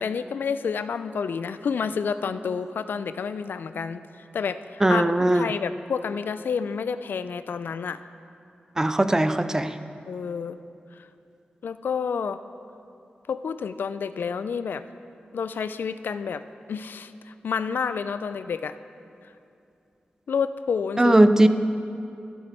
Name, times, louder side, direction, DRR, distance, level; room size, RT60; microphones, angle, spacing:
voice 1, 0.0-5.0 5.3-8.0 10.0-10.6 10.9-11.1 11.6-12.4 13.3-14.8 15.3-18.8 20.3-21.2, left 6 dB, 80° left, 12 dB, 0.3 m, -29 dB
voice 2, 4.8-5.5 8.8-9.7 21.0-21.5, right 1 dB, 15° right, 11 dB, 0.4 m, -19 dB
12.0 x 7.8 x 4.4 m, 2.6 s
wide cardioid pair, 95°, 3 cm